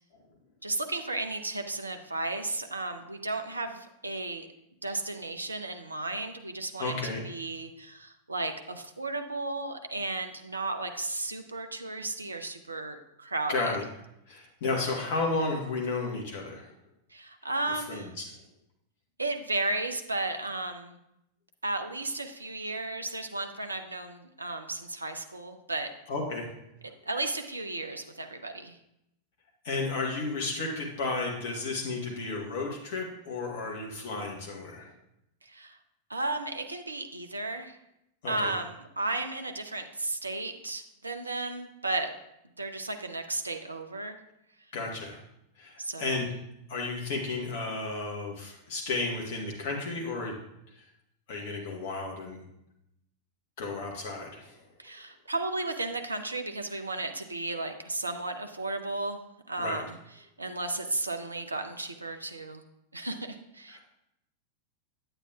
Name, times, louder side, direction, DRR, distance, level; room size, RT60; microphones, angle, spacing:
voice 1, 0.6-4.5 4.8-7.0 7.2-13.8 17.1-18.1 19.2-21.0 21.6-25.9 27.1-28.8 35.4-35.8 36.1-37.8 38.3-42.1 42.6-44.2 45.8-46.2 54.8-59.2 59.5-60.0 60.4-62.7 62.9-63.8, right 2 dB, 80° right, 6 dB, 0.5 m, -34 dB
voice 2, 6.8-7.2 13.5-13.8 14.3-16.7 17.8-18.3 26.1-26.5 29.6-34.9 38.2-38.5 44.7-45.2 45.6-46.3 46.7-50.3 51.3-52.4 53.6-54.6 59.6-59.8 63.7-63.8, left 3 dB, 50° left, -1 dB, 1.1 m, -33 dB
8.9 x 8.6 x 2.3 m, 0.82 s
figure-of-eight pair, 90°, 0 cm